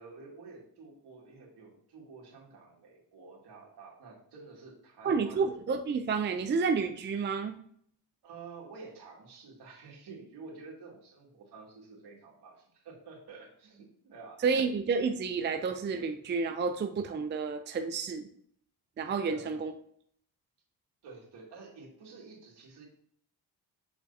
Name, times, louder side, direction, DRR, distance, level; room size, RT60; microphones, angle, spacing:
voice 1, 0.0-5.5 8.2-14.5 19.2-19.7 21.0-22.9, right 4 dB, 75° right, -2 dB, 2.4 m, -50 dB
voice 2, 5.0-7.6 14.4-18.3 19.0-19.7, right 5 dB, 25° right, 6 dB, 0.5 m, -30 dB
6.5 x 6.1 x 2.8 m, 0.64 s
cardioid pair, 105°, 40 cm